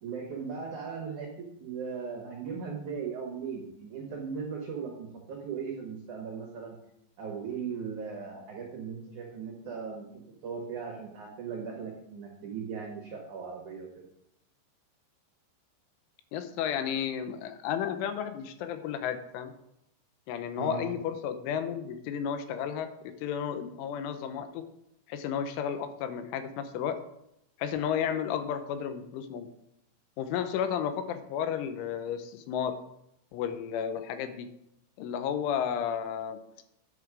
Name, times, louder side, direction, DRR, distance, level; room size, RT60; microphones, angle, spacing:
voice 1, 0.0-6.8 7.2-14.0 20.6-20.9, right 6 dB, 80° right, 0 dB, 1.7 m, -38 dB
voice 2, 16.3-19.5 20.3-22.9 23.2-24.6 25.1-27.0 27.6-29.5 30.2-32.7 33.3-34.5 35.0-36.4, left 8 dB, 85° left, 9 dB, 3.2 m, -32 dB
10.0 x 5.8 x 4.8 m, 0.79 s
omnidirectional pair, 5.6 m